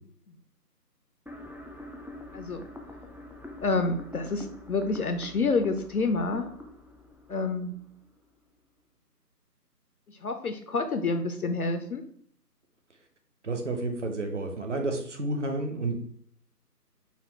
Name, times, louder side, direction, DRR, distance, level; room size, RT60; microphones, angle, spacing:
sound 1, 1.3-8.3, left 1 dB, 5° right, 0.3 m, -45 dB
voice 1, 2.3-2.6 3.6-6.5 7.3-7.7 10.1-12.0, left 3 dB, 65° left, 7 dB, 0.5 m, -28 dB
voice 2, 13.4-16.0, right 2 dB, 45° right, 4 dB, 0.7 m, -30 dB
4.2 x 2.2 x 4.2 m, 0.63 s
figure-of-eight pair, 165°, 49 cm